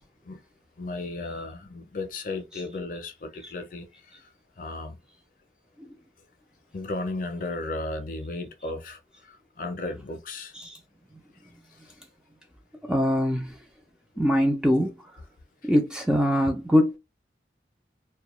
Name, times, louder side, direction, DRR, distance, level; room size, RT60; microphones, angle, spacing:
voice 1, 0.8-3.9 4.1-4.2 4.6-5.0 6.7-9.0 9.3-10.5, left 2 dB, 50° left, 0.5 m, -34 dB
voice 2, 12.9-13.6 14.2-15.0 15.6-17.0, equal, 5° right, 0.3 m, -22 dB
2.2 x 2.2 x 3.0 m
head